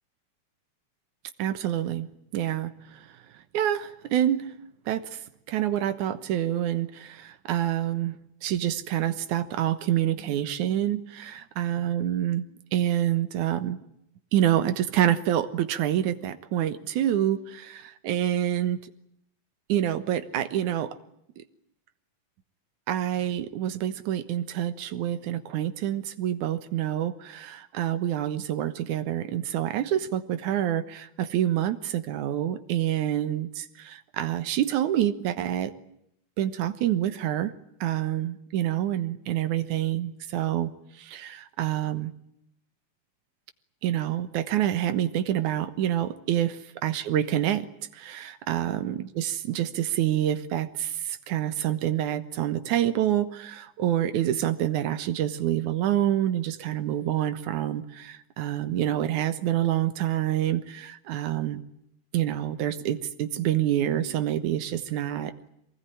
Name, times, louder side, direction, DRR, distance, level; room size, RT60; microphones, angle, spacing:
voice 1, 1.4-2.1 2.3-3.1 3.5-4.5 4.9-5.2 5.5-8.2 8.4-12.4 12.7-13.8 14.3-18.8 19.7-21.0 21.4-21.5 22.9-35.7 36.4-37.5 37.8-40.7 41.0-42.1 43.8-47.7 47.9-61.6 62.1-65.5, right 11 dB, 80° right, 11 dB, 2.7 m, -27 dB
24.0 x 19.5 x 10.0 m, 0.77 s
omnidirectional pair, 3.4 m